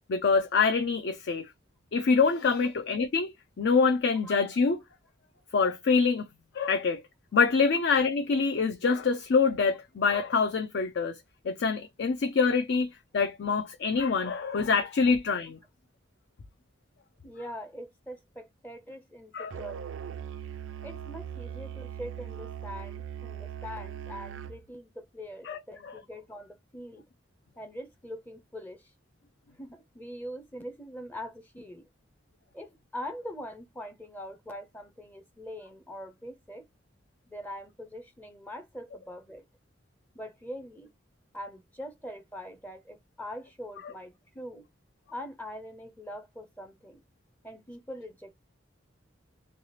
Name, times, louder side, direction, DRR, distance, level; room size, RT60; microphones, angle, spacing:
voice 1, 0.1-1.5 1.9-3.3 3.6-4.8 5.5-6.3 6.5-7.0 7.3-11.1 11.4-12.9 13.1-15.6 19.3-19.5 25.5-26.0 43.8-43.9, left 5 dB, 60° left, 0.4 m, -25 dB
voice 2, 17.2-20.0 20.8-27.0 27.6-28.9 29.6-31.8 32.5-36.6 37.3-39.4 40.1-40.9 41.3-44.6 45.1-47.0 47.4-48.4, equal, 10° left, 0.5 m, -43 dB
Musical instrument, 19.5-24.6, right 9 dB, 80° right, 0.4 m, -40 dB
3.2 x 2.8 x 2.8 m
head